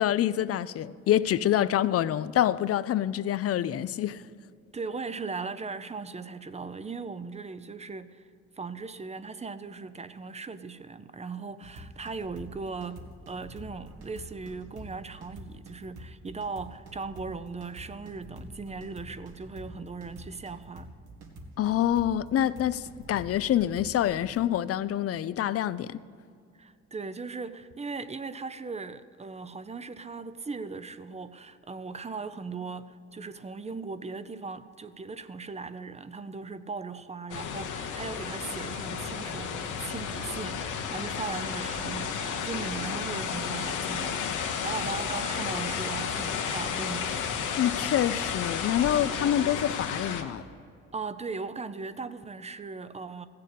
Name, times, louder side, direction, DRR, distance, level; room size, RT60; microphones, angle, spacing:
voice 1, 0.0-4.2 21.6-26.0 47.6-50.5, left 11 dB, 50° left, 0.5 m, -26 dB
voice 2, 4.7-8.3 8.6-20.9 26.5-47.2 50.9-53.3, right 4 dB, 20° right, 0.6 m, -38 dB
sound 1, 11.6-24.4, right 1 dB, 75° right, 1.9 m, -46 dB
sound 2, 37.3-50.2, left 7 dB, 85° left, 1.2 m, -32 dB
15.5 x 6.8 x 8.3 m
cardioid pair, 90°, 30 cm